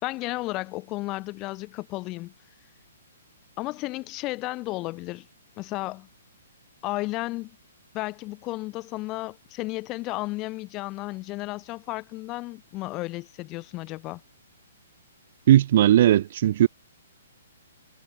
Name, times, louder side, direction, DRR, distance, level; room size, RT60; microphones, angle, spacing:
voice 1, 0.0-2.3 3.6-5.3 5.6-6.1 6.8-7.5 7.9-14.2, left 20 dB, 25° left, 2.2 m, -33 dB
voice 2, 15.5-16.7, right 12 dB, 45° right, 0.8 m, -17 dB
figure-of-eight pair, 120°, 0 cm